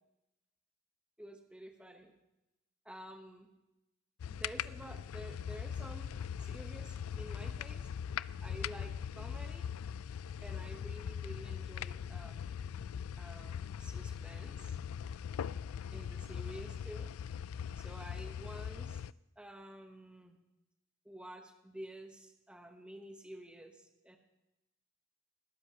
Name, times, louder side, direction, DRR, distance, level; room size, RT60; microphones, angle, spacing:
voice 1, 1.2-2.1 2.8-3.5 4.3-7.9 8.4-9.7 10.4-12.8 13.2-14.7 15.9-17.1 17.8-19.0 19.4-20.4 21.0-24.2, equal, 5° right, 4 dB, 1.0 m, -50 dB
sound 1, 4.2-19.1, left 8 dB, 70° left, 0.3 m, -41 dB
19.5 x 13.0 x 2.9 m, 0.95 s
head